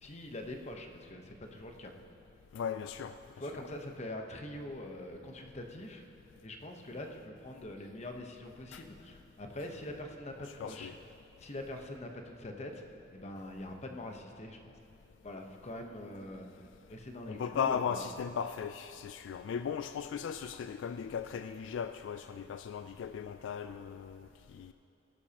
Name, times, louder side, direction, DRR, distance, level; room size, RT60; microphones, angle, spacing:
voice 1, 0.0-1.9 3.4-6.0 6.4-10.9 11.4-12.8 13.1-14.7 15.2-18.1, left 1 dB, 35° left, 3 dB, 1.0 m, -44 dB
voice 2, 2.5-3.1 8.7-8.8 10.6-10.9 17.3-24.7, left 7 dB, 75° left, 10 dB, 0.3 m, -37 dB
18.0 x 11.5 x 2.9 m, 2.8 s
head